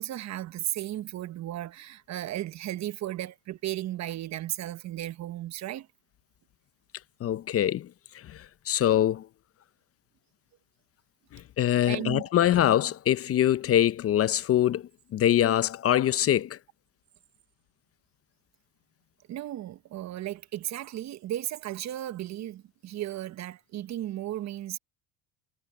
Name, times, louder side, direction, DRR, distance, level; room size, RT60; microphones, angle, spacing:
voice 1, 0.0-5.9 11.9-12.2 19.3-24.8, right 13 dB, 45° right, 1.2 m, -35 dB
voice 2, 7.2-9.3 11.3-16.6, left 11 dB, 40° left, 0.8 m, -24 dB
supercardioid pair, 95°, 37 cm